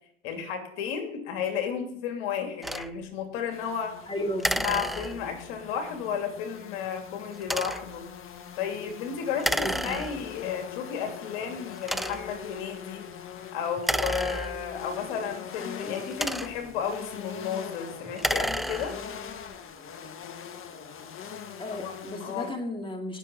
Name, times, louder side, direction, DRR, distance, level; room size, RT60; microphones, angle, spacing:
voice 1, 0.2-3.9 4.6-8.0 8.6-13.0 13.5-19.0 21.8-21.9 22.2-22.5, left 7 dB, 70° left, 4 dB, 2.7 m, -33 dB
sound 1, 2.6-2.9 4.4-5.4 7.4-8.0 9.4-10.4 11.1-11.2 11.8-12.4 13.8-14.9 15.9-16.8 18.1-19.1, equal, ahead, 0.3 m, -31 dB
sound 2, 3.5-22.5, left 8 dB, 45° left, 1.7 m, -42 dB
voice 2, 4.1-4.8 9.6-10.0 21.6-23.2, equal, 15° left, 4 dB, 2.2 m, -34 dB
19.5 x 6.8 x 3.9 m, 0.71 s
hypercardioid pair, 75°, 30 cm